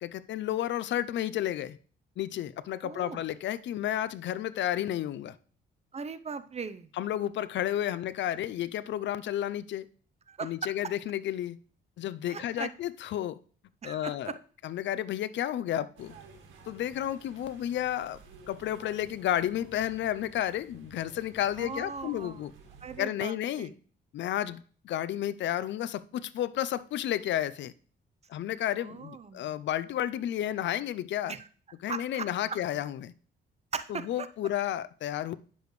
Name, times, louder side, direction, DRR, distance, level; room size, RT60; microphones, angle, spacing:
voice 1, 0.0-1.8 2.2-5.4 7.0-9.9 10.4-11.6 12.0-13.4 13.8-14.3 14.6-16.2 16.7-18.2 18.5-22.5 23.0-23.7 24.1-27.7 28.3-31.3 31.8-33.1 34.1-35.4, left 12 dB, 65° left, 0.5 m, -32 dB
voice 2, 2.8-3.2 5.9-6.9 7.9-8.0 10.3-10.7 12.3-12.7 13.8-14.4 21.6-22.5 22.8-23.8 28.8-29.6 31.3-31.5 31.9-32.6 33.7-34.3, right 5 dB, 35° right, 0.7 m, -39 dB
sound 1, 16.0-23.0, right 5 dB, 80° right, 1.9 m, -53 dB
9.9 x 6.9 x 3.2 m
cardioid pair, 90°, 20 cm